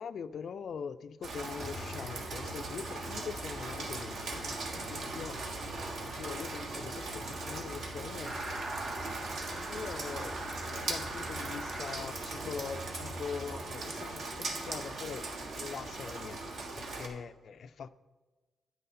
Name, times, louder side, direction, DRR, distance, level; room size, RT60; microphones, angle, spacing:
voice 1, 0.0-5.4 5.7-8.4 9.5-10.4 10.8-15.3 15.5-16.4 16.8-17.9, left 6 dB, 50° left, 0.3 m, -42 dB
Rain, 1.2-17.1, right 3 dB, 55° right, 1.5 m, -39 dB
sound 1, 1.6-13.7, left 1 dB, 85° right, 3.0 m, -47 dB
sound 2, 8.2-11.9, right 2 dB, 40° right, 3.3 m, -41 dB
9.8 x 9.2 x 4.2 m
wide cardioid pair, 160°, 0 cm